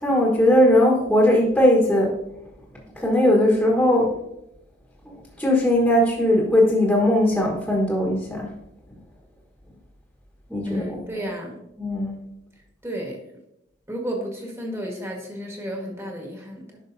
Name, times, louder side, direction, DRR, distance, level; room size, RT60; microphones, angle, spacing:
voice 1, 0.0-2.1 3.0-4.1 5.1-8.5 10.5-11.0 11.8-12.1, left 1 dB, 5° left, -3 dB, 1.4 m, -19 dB
voice 2, 10.6-11.6 12.8-13.2 13.9-16.8, equal, 15° right, 0 dB, 1.6 m, -32 dB
10.5 x 6.1 x 2.7 m, 0.84 s
head